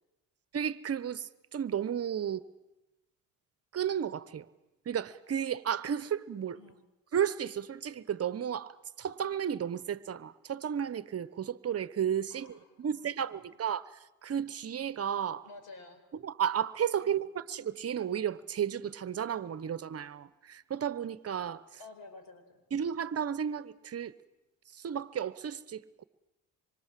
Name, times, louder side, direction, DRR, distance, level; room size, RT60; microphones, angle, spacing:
voice 1, 0.5-2.4 3.7-4.4 4.9-6.6 7.1-13.8 14.2-15.5 16.2-21.6 22.7-24.1 24.8-26.0, right 8 dB, 45° right, 1.0 m, -33 dB
voice 2, 12.3-13.0 13.4-13.6 15.4-16.0 17.0-17.3 21.8-22.6, left 3 dB, 85° left, 5.2 m, -52 dB
26.0 x 23.5 x 7.6 m
cardioid pair, 100°, 34 cm